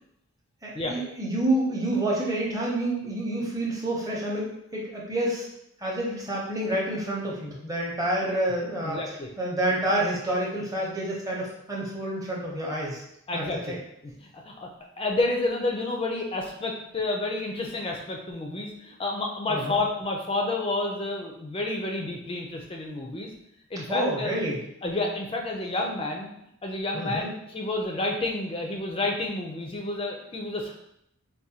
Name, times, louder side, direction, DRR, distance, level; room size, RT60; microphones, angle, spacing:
voice 1, 0.6-5.5 5.8-9.0 9.4-13.0 13.3-13.8 19.5-19.8 23.9-24.6 26.9-27.3, right 1 dB, 15° right, -4 dB, 0.7 m, -28 dB
voice 2, 8.8-9.3 13.3-13.8 14.0-14.7 15.0-23.3 23.7-24.3 24.8-26.3 26.6-30.7, left 2 dB, 25° left, 1 dB, 0.4 m, -30 dB
4.7 x 2.2 x 2.7 m, 0.78 s
head